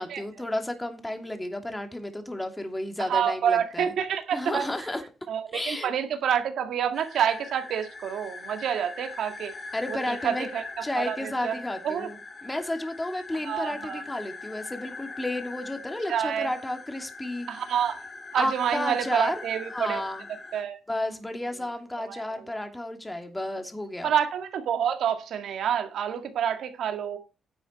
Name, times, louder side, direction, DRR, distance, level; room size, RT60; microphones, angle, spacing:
voice 1, 0.0-3.9 4.3-5.0 5.5-5.9 9.7-10.5 10.8-17.5 18.4-19.4 19.7-20.2 20.9-24.1, left 1 dB, 15° left, 2.7 m, -32 dB
voice 2, 3.0-4.7 5.3-9.5 9.9-11.6 11.8-12.1 13.4-14.0 16.1-16.5 17.5-18.0 18.3-20.0 20.3-20.8 22.0-22.4 24.0-27.2, right 8 dB, 80° right, 1.9 m, -28 dB
sound 1, 6.9-20.6, left 3 dB, 40° left, 2.0 m, -42 dB
10.5 x 8.0 x 4.2 m
cardioid pair, 75°, 0 cm